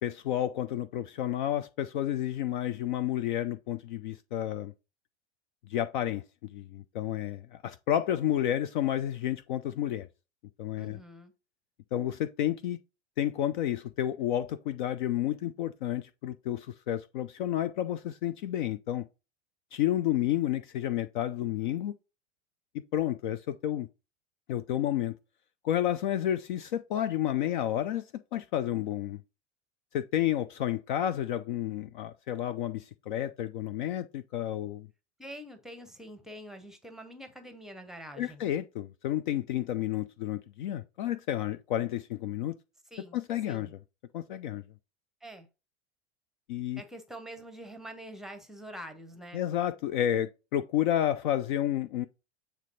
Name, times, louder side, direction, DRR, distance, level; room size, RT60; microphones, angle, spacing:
voice 1, 0.0-4.7 5.7-6.2 6.5-10.1 10.6-11.0 11.9-12.8 13.2-19.0 19.7-21.9 22.9-23.9 24.5-25.2 25.6-28.0 28.3-29.2 29.9-34.9 38.2-42.6 43.1-43.7 44.1-44.6 46.5-46.8 49.3-52.1, left 11 dB, 45° left, 0.4 m, -30 dB
voice 2, 10.8-11.3 35.2-38.4 42.9-43.2 43.5-43.7 45.2-45.5 46.8-49.4, equal, ahead, 0.8 m, -45 dB
7.3 x 3.3 x 4.0 m
figure-of-eight pair, 85°, 35 cm